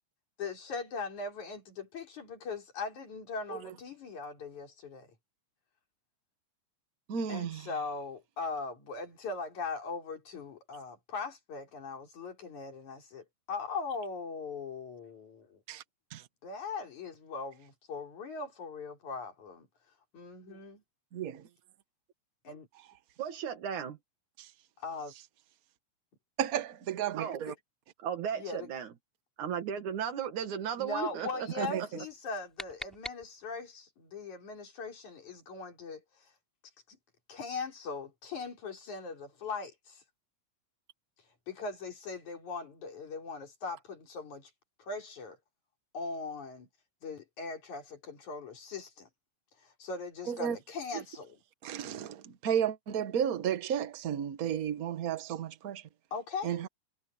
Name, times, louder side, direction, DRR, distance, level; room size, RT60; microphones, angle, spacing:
voice 1, 0.4-5.1 7.3-15.6 16.4-19.7 20.1-20.8 22.4-22.7 24.8-25.1 27.5-27.6 28.4-28.7 30.8-36.3 36.9-37.0 37.3-40.0 41.5-44.5 44.8-45.4 45.9-46.7 47.0-49.1 49.6-51.4 56.1-56.6, left 4 dB, 80° left, 5.8 m, -40 dB
voice 2, 7.1-7.7 15.7-15.8 16.1-16.2 21.1-21.4 24.4-24.5 26.4-27.5 31.6-31.8 50.3-50.6 50.9-51.0 51.6-55.8 56.4-56.7, right 9 dB, 55° right, 1.0 m, -33 dB
voice 3, 23.2-24.0 27.2-27.4 28.0-28.9 29.4-31.7, right 8 dB, 85° right, 3.3 m, -35 dB
sound 1, 32.1-33.8, equal, ahead, 5.1 m, -46 dB
omnidirectional pair, 3.3 m